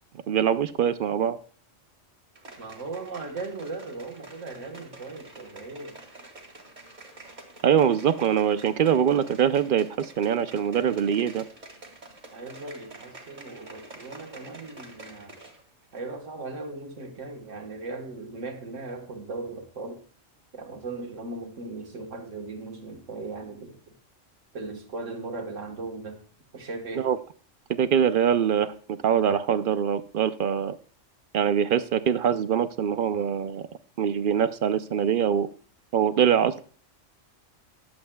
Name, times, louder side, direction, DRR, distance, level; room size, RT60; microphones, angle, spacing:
voice 1, 0.3-1.4 7.6-11.4 27.0-27.2 27.8-28.7 29.0-30.8 31.3-33.6 34.0-35.5 35.9-36.6, right 8 dB, 60° right, 0.6 m, -23 dB
corn popper basic, 2.3-15.6 15.9-16.0, right 2 dB, 35° right, 1.9 m, -47 dB
voice 2, 2.6-6.0 12.3-15.4 15.9-20.0 20.5-24.0 24.5-26.2 26.5-27.1, right 3 dB, 75° right, 1.7 m, -38 dB
19.5 x 7.9 x 2.2 m
omnidirectional pair, 1.3 m